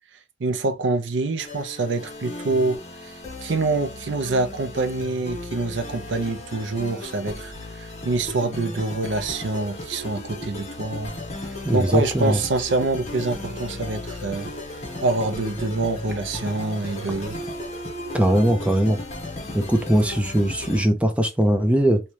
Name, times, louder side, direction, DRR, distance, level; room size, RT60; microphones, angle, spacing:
voice 1, 0.4-3.1 3.4-11.1 11.7-14.5 15.0-17.4, right 3 dB, 70° right, 0.5 m, -26 dB
sound 1, 1.4-20.8, left 1 dB, 35° left, 1.0 m, -35 dB
voice 2, 11.6-12.4 18.1-19.0 19.5-22.0, right 1 dB, 5° right, 0.5 m, -20 dB
3.0 x 2.8 x 3.1 m
head